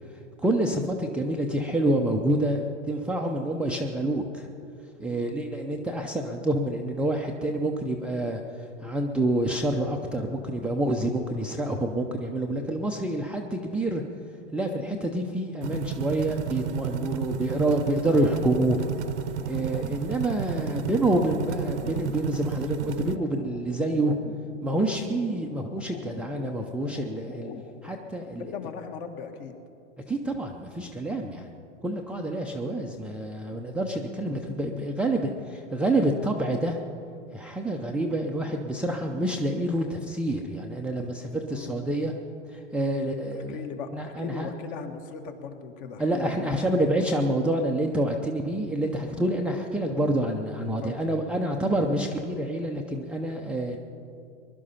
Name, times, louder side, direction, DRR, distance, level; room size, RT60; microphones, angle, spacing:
voice 1, 0.4-4.5 5.0-8.4 8.8-14.0 14.5-18.8 19.5-24.2 24.6-27.5 27.8-28.5 30.1-31.5 31.8-36.8 37.3-42.1 42.5-43.6 43.9-44.5 46.0-53.8, right 1 dB, 5° right, 2 dB, 0.5 m, -27 dB
sound 1, 15.6-23.2, right 8 dB, 65° right, 0.8 m, -32 dB
sound 2, 18.0-28.9, left 6 dB, 25° left, 0.7 m, -45 dB
voice 2, 28.5-29.5 31.2-31.3 41.5-41.8 42.8-43.1 43.5-46.6 50.8-51.0, left 6 dB, 45° left, 6 dB, 1.7 m, -38 dB
21.0 x 11.5 x 5.6 m, 2.5 s
hypercardioid pair, 125°, 37 cm